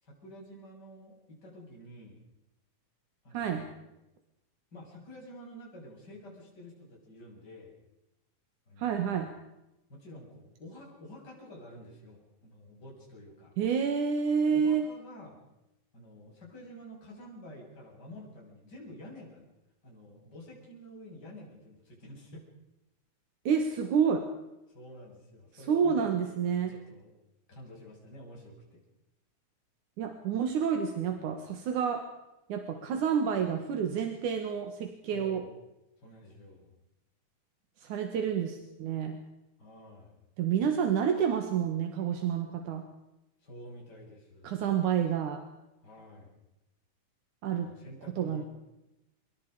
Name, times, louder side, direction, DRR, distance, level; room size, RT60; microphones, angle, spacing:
voice 1, 0.0-2.2 3.2-3.8 4.7-7.7 8.7-9.1 9.9-13.5 14.5-15.4 15.9-19.4 19.8-22.5 24.7-27.1 27.5-28.8 35.1-35.5 36.0-36.8 39.6-40.2 43.4-44.6 45.8-46.4 47.5-48.4, left 1 dB, 30° left, -2 dB, 7.4 m, -49 dB
voice 2, 3.3-3.7 8.8-9.3 13.6-14.8 23.4-24.3 25.7-26.7 30.0-32.1 32.5-35.4 37.8-39.2 40.4-42.8 44.4-45.4 47.4-47.7 48.2-48.4, right 7 dB, 85° right, 5 dB, 3.2 m, -29 dB
27.0 x 23.0 x 5.1 m, 0.91 s
omnidirectional pair, 3.4 m